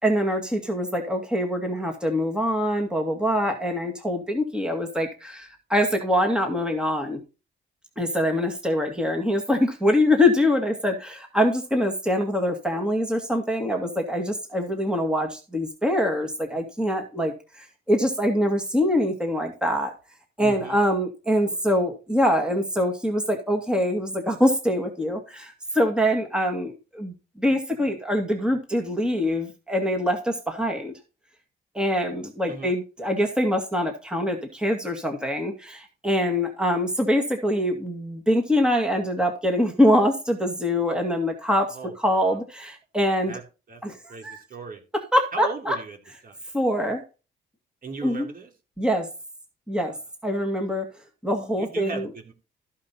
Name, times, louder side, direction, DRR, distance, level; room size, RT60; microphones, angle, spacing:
voice 1, 0.0-7.2 8.0-19.9 20.4-30.9 31.7-43.3 43.8-44.0 44.2-44.4 45.1-45.8 46.5-47.0 48.0-48.3 48.8-49.1 49.7-49.9 50.2-50.9 51.2-52.1, equal, 5° right, 4 dB, 2.2 m, -24 dB
voice 2, 20.4-20.8 21.4-21.6 32.5-32.8 41.7-42.4 43.3-43.4 43.7-43.8 44.1-44.8 45.3-46.0 46.2-46.4 47.8-48.5 49.7-50.0 51.6-52.3, right 5 dB, 45° right, 3 dB, 3.3 m, -37 dB
14.0 x 5.5 x 4.2 m, 0.31 s
cardioid pair, 90°, 20 cm